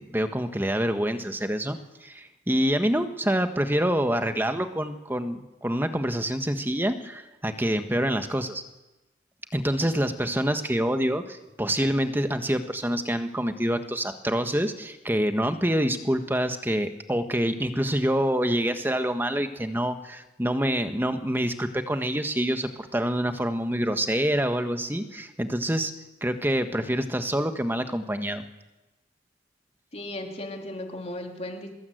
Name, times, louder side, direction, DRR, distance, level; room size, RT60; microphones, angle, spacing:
voice 1, 0.0-8.6 9.5-25.9 26.2-28.4, equal, 10° right, 7 dB, 1.4 m, -26 dB
voice 2, 29.9-31.7, left 1 dB, 35° left, 2 dB, 3.3 m, -36 dB
24.5 x 21.0 x 7.9 m, 1.1 s
head